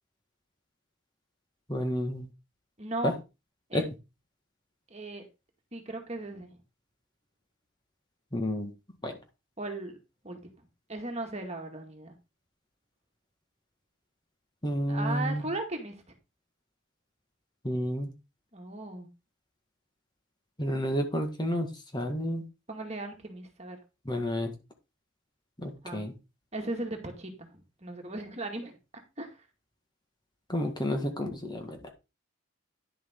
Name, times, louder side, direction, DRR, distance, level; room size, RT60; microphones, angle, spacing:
voice 1, 1.7-2.3 3.0-3.1 3.7-3.8 8.3-8.7 9.0-9.1 14.6-15.5 17.6-18.1 20.6-21.7 21.9-22.4 24.0-24.5 25.6-26.1 30.5-31.9, equal, 20° left, 4 dB, 1.7 m, -30 dB
voice 2, 2.8-3.1 3.7-3.8 4.9-5.2 5.7-6.5 9.6-10.0 10.2-10.4 10.9-12.1 14.9-16.0 18.5-19.1 22.7-23.8 25.8-26.1 26.5-29.3, right 2 dB, 35° right, 3 dB, 2.1 m, -37 dB
10.5 x 7.4 x 3.8 m, 0.27 s
head